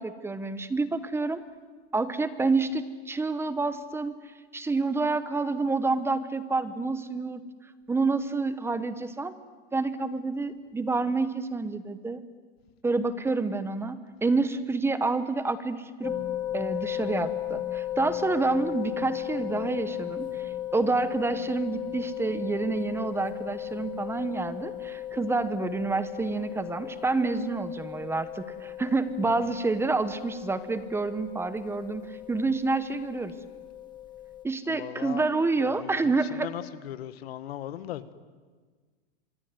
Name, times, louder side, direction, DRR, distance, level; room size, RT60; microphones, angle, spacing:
voice 1, 0.0-1.4 1.9-4.2 4.5-7.4 7.9-9.3 9.7-12.2 12.8-16.2 16.5-33.3 34.4-36.5, right 3 dB, 10° right, 13 dB, 0.9 m, -28 dB
sound 1, 16.0-34.4, left 12 dB, 15° left, 0.8 m, -36 dB
voice 2, 34.7-35.3 35.6-38.1, left 12 dB, 90° left, 13 dB, 1.6 m, -38 dB
25.5 x 21.5 x 9.5 m, 1.4 s
supercardioid pair, 155°, 30 cm